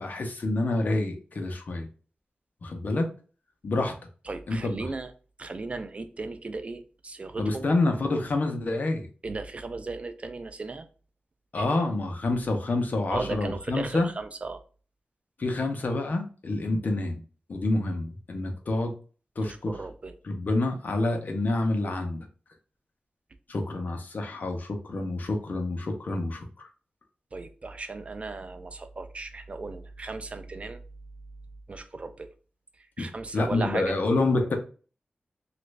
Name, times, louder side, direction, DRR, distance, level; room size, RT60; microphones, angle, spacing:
voice 1, 0.0-1.9 2.6-3.1 3.6-3.9 4.5-4.9 7.4-9.1 11.5-14.1 15.4-17.2 17.5-18.9 19.4-19.8 20.2-22.3 23.5-26.7 33.0-33.1 33.3-34.6, left 2 dB, 60° left, 0.7 m, -28 dB
voice 2, 4.3-5.1 5.4-7.7 9.2-10.9 11.6-11.7 13.1-14.6 19.4-20.1 27.3-30.8 31.7-32.3 33.0-34.0, right 3 dB, 40° right, 0.4 m, -36 dB
3.1 x 2.5 x 3.2 m
wide cardioid pair, 125°, 3 cm